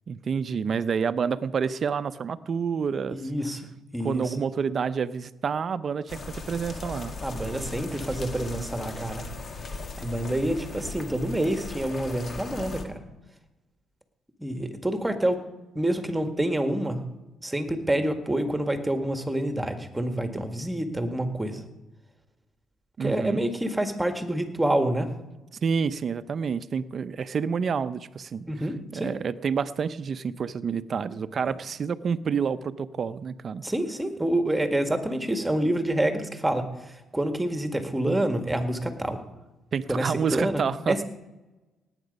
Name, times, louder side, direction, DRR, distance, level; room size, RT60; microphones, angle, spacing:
voice 1, 0.1-3.2 4.0-7.1 23.0-23.4 25.6-28.5 28.9-33.6 39.7-41.0, right 6 dB, 50° right, 14 dB, 0.7 m, -28 dB
voice 2, 3.1-3.6 3.9-4.3 7.2-9.2 10.0-13.0 14.4-15.4 15.7-17.0 17.4-21.6 23.0-25.1 28.5-29.1 31.4-31.6 33.6-36.7 37.1-39.2 39.9-41.0, right 1 dB, 10° right, 7 dB, 1.8 m, -27 dB
sound 1, 6.1-12.9, left 3 dB, 45° left, 1.9 m, -38 dB
18.0 x 9.0 x 5.4 m, 1.1 s
cardioid pair, 90°, 0 cm